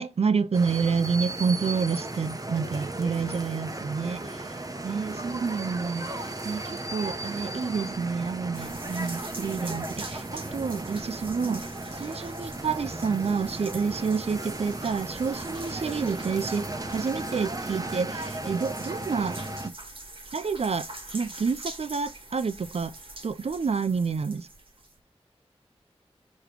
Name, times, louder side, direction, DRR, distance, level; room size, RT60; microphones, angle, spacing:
voice 1, 0.0-11.6 11.9-19.4 20.3-20.9 21.1-22.9 23.2-24.5, right 5 dB, 70° right, 0.5 m, -29 dB
sound 1, 0.5-19.7, right 2 dB, 35° right, 1.1 m, -35 dB
sound 2, 8.5-25.0, right 2 dB, 55° right, 1.6 m, -44 dB
6.5 x 3.1 x 5.0 m
wide cardioid pair, 55°, 11 cm